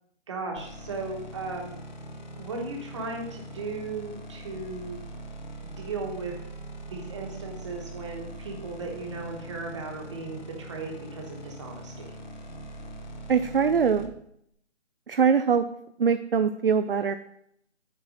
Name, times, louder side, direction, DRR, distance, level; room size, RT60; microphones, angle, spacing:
voice 1, 0.3-1.7 2.3-5.1 5.6-6.4 6.9-12.1, right 3 dB, 25° right, 0 dB, 1.3 m, -36 dB
sound 1, 0.6-14.1, right 1 dB, 40° left, 1.0 m, -42 dB
voice 2, 13.3-14.1 15.1-15.6 16.0-17.2, right 6 dB, 50° right, 10 dB, 0.4 m, -22 dB
7.3 x 4.4 x 6.3 m, 0.74 s
hypercardioid pair, 170°, 36 cm